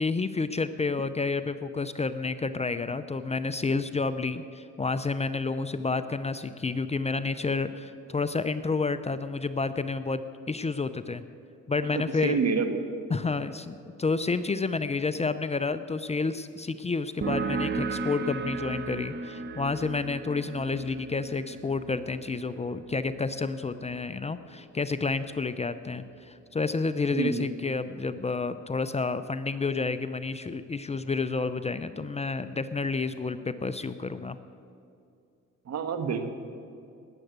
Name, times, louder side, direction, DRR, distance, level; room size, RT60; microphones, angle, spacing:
voice 1, 0.0-11.2 11.7-12.5 13.1-34.4, left 4 dB, 20° left, 11 dB, 0.6 m, -30 dB
voice 2, 11.9-12.8 27.1-27.5 35.7-36.3, right 5 dB, 60° right, 8 dB, 1.5 m, -28 dB
sound 1, 17.2-24.5, right 4 dB, 35° right, 1.0 m, -36 dB
19.0 x 7.8 x 8.1 m, 2.4 s
cardioid pair, 90°, 30 cm